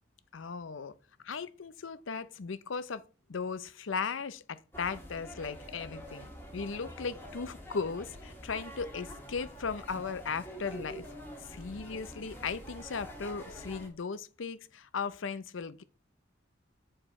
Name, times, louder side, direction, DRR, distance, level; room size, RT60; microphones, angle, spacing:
voice 1, 0.3-0.9 1.2-3.0 3.3-11.1 11.4-15.8, left 5 dB, 90° left, 0.6 m, -37 dB
sound 1, 4.7-13.9, equal, 10° left, 1.7 m, -46 dB
7.8 x 4.7 x 4.2 m
head